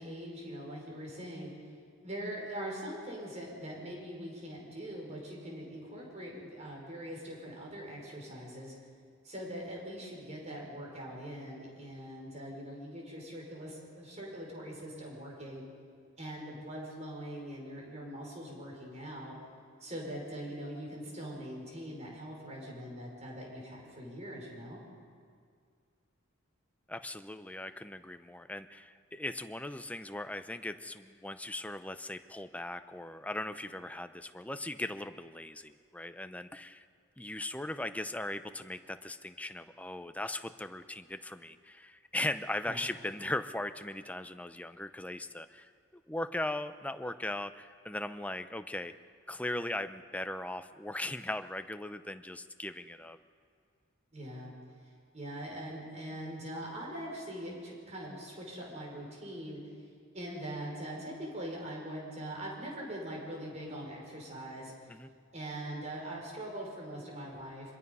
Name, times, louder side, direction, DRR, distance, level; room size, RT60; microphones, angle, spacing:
voice 1, 0.0-1.5 2.0-8.7 9.2-15.6 16.2-19.3 19.8-24.8 42.7-42.8 54.1-54.5 55.1-59.6 60.1-64.7 65.3-67.7, right 1 dB, 35° right, -2 dB, 5.7 m, -42 dB
voice 2, 26.9-36.9 37.2-48.9 49.3-53.2 64.9-65.1, left 1 dB, 5° left, 10 dB, 0.6 m, -39 dB
24.5 x 22.0 x 5.5 m, 2.1 s
head